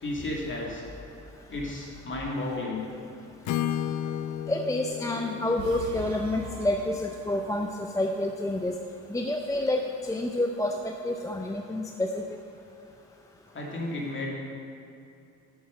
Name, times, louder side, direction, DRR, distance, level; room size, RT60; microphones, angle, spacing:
voice 1, 0.0-0.8 1.5-2.8 13.5-14.3, left 2 dB, 40° left, -2 dB, 2.3 m, -33 dB
Acoustic guitar / Strum, 3.4-7.4, left 10 dB, 85° left, 0.5 m, -34 dB
voice 2, 4.5-8.8 9.1-12.2, left 1 dB, 10° left, 3 dB, 0.6 m, -28 dB
sound 1, 5.6-7.8, right 1 dB, 70° right, 0.9 m, -42 dB
8.0 x 7.2 x 6.4 m, 2.6 s
cardioid pair, 90°, 30 cm